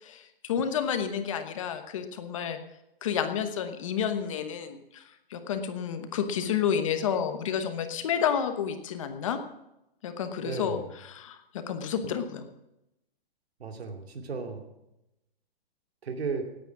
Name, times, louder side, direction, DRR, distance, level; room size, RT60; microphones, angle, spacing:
voice 1, 0.0-2.6 3.0-5.0 5.3-9.4 10.0-12.5, left 8 dB, 30° left, 8 dB, 1.1 m, -30 dB
voice 2, 10.4-10.8 13.6-14.7 16.0-16.4, right 5 dB, 85° right, 4 dB, 2.6 m, -34 dB
17.5 x 9.1 x 5.9 m, 0.89 s
hypercardioid pair, 175°, 31 cm